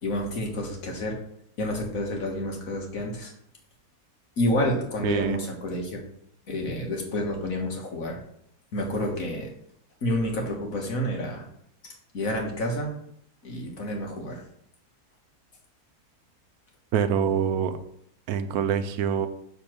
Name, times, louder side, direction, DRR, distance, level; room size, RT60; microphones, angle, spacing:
voice 1, 0.0-1.2 1.6-3.3 4.4-6.0 6.5-8.2 8.7-9.5 10.0-11.5 11.8-12.9 13.4-14.4, left 1 dB, 65° left, 1 dB, 1.9 m, -29 dB
voice 2, 5.0-5.4 16.9-17.8 18.3-19.3, right 8 dB, 80° right, 10 dB, 1.1 m, -25 dB
6.9 x 4.0 x 6.0 m, 0.69 s
omnidirectional pair, 1.6 m